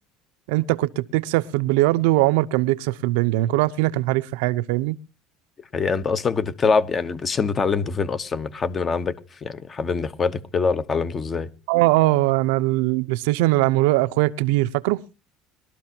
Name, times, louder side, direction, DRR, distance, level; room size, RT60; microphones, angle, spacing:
voice 1, 0.5-5.0 11.7-15.0, right 18 dB, 90° right, 0.8 m, -21 dB
voice 2, 5.7-9.1 9.4-11.5, left 5 dB, 25° left, 1.0 m, -24 dB
21.5 x 13.0 x 2.9 m
cardioid pair, 150°, 0 cm